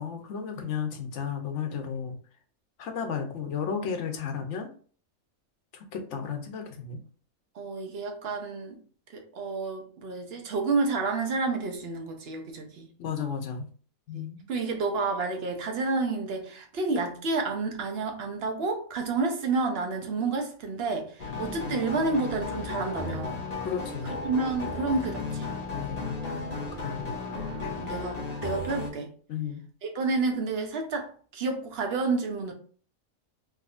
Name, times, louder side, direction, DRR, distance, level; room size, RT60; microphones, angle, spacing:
voice 1, 0.0-2.2 2.8-4.7 5.7-7.0 13.0-13.7 14.1-14.5 23.6-24.2 25.7-26.2 26.7-27.1 27.6-27.7 29.3-29.6, left 7 dB, 65° left, 0.9 m, -33 dB
voice 2, 7.6-8.8 9.1-12.9 14.1-23.4 24.2-25.5 27.8-29.1 29.8-32.5, right 3 dB, 55° right, 0.8 m, -30 dB
sound 1, 21.2-28.9, left 3 dB, 35° left, 0.8 m, -34 dB
3.5 x 2.7 x 2.4 m
omnidirectional pair, 1.4 m